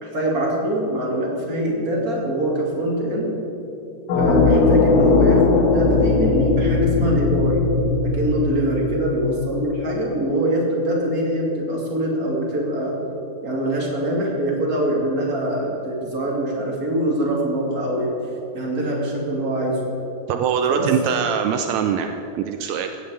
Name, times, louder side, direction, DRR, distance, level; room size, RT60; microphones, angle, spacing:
voice 1, 0.0-3.4 4.1-7.6 8.1-12.9 13.4-18.1 18.5-19.8 20.7-20.9, right 1 dB, 30° right, -2 dB, 2.9 m, -23 dB
sound 1, 4.1-9.9, left 4 dB, 85° left, 2.8 m, -19 dB
voice 2, 20.3-23.0, right 7 dB, 80° right, 7 dB, 1.8 m, -23 dB
16.0 x 7.5 x 8.3 m, 2.8 s
omnidirectional pair, 3.5 m